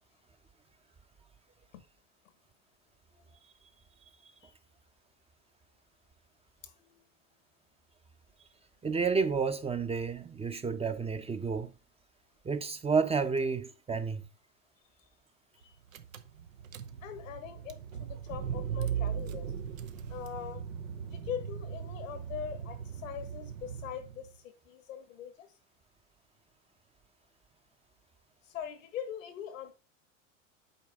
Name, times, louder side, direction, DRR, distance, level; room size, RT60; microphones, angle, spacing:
voice 1, 6.6-7.0 15.0-15.1 15.6-15.8 17.0-19.5 20.1-20.6 21.0-25.5 28.4-29.7, left 9 dB, 85° left, 1.5 m, -42 dB
voice 2, 8.8-11.7 12.4-14.2, right 5 dB, 15° right, 0.7 m, -30 dB
Car / Engine, 15.6-15.7 15.9-24.3, right 8 dB, 90° right, 0.9 m, -38 dB
8.2 x 4.6 x 3.5 m
hypercardioid pair, 95°, 39 cm